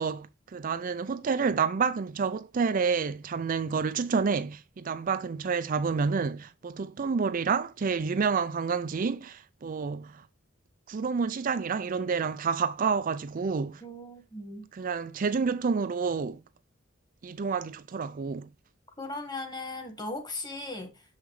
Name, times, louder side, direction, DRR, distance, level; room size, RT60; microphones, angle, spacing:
voice 1, 0.0-10.2 10.9-13.8 14.7-16.4 17.2-18.5, right 5 dB, 45° right, 0.4 m, -29 dB
voice 2, 13.8-14.7 19.0-21.0, left 2 dB, 20° left, 1.6 m, -38 dB
7.2 x 5.7 x 3.2 m
head